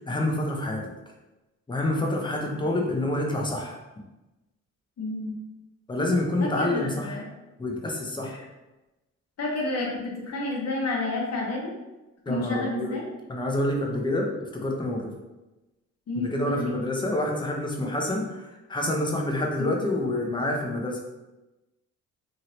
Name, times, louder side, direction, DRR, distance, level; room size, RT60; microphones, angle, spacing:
voice 1, 0.1-0.9 1.7-3.8 5.9-7.2 7.6-8.4 12.3-12.9 13.3-15.1 16.2-21.0, left 1 dB, 15° left, 0 dB, 0.7 m, -27 dB
voice 2, 5.0-5.3 6.4-7.2 9.4-11.7 12.3-13.0 16.1-16.8 19.6-19.7, left 2 dB, 55° left, -2 dB, 1.1 m, -30 dB
2.8 x 2.7 x 3.1 m, 1.0 s
cardioid pair, 90°, 30 cm